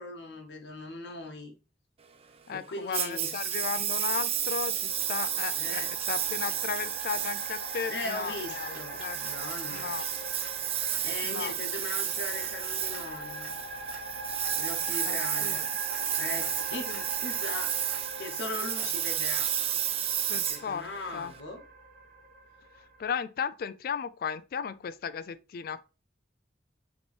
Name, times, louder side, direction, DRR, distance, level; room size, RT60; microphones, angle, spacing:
voice 1, 0.0-1.5 2.5-3.5 5.6-5.9 7.9-9.9 11.0-13.5 14.6-15.6 16.2-17.9 18.2-19.5 20.3-21.6, left 2 dB, 80° left, 1.0 m, -39 dB
voice 2, 2.5-9.2 9.7-10.1 11.2-11.5 15.0-15.7 16.9-17.0 20.3-20.9 21.1-21.3 23.0-25.8, left 6 dB, 55° left, 0.3 m, -35 dB
Engine, 2.9-21.4, right 10 dB, 35° right, 0.4 m, -32 dB
sound 1, 3.0-18.4 18.8-19.4, equal, 5° right, 2.2 m, -55 dB
sound 2, 4.9-23.1, right 2 dB, 55° right, 1.1 m, -42 dB
5.1 x 3.0 x 3.3 m
head